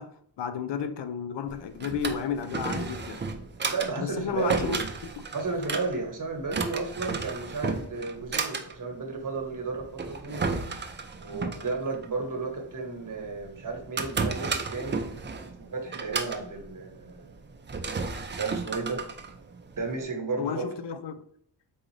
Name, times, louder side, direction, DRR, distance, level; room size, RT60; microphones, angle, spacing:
voice 1, 0.0-3.2 4.0-5.1 20.4-21.2, left 7 dB, 70° left, 0.5 m, -33 dB
Drawer open or close, 1.5-20.0, right 4 dB, 25° right, 0.4 m, -34 dB
voice 2, 3.7-4.9 5.3-10.5 11.2-15.0 15.6-17.3 18.3-19.0 19.8-20.7, right 3 dB, 45° right, 1.1 m, -33 dB
3.9 x 3.8 x 3.1 m
wide cardioid pair, 110°, 45 cm